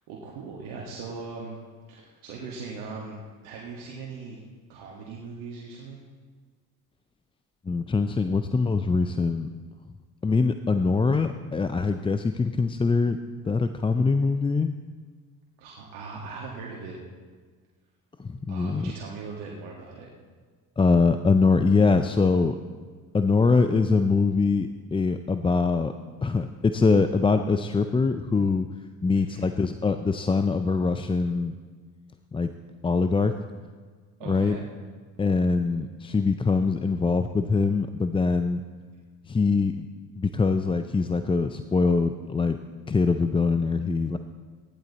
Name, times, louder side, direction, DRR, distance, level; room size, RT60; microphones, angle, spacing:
voice 1, 0.1-1.6 1.9-3.2 3.4-4.4 4.7-6.0 15.6-17.0 18.5-20.1 29.1-29.5 34.2-34.7, right 4 dB, 75° right, -3 dB, 1.8 m, -39 dB
voice 2, 7.7-9.5 10.2-13.2 13.4-14.7 18.2-18.9 20.8-22.6 23.1-25.9 26.2-28.7 29.0-31.6 32.3-32.5 32.8-33.3 34.3-34.6 35.2-38.6 39.3-39.9 40.2-42.6 42.9-44.2, left 4 dB, 10° left, 9 dB, 0.4 m, -23 dB
15.0 x 10.5 x 4.1 m, 1.5 s
hypercardioid pair, 65°, 47 cm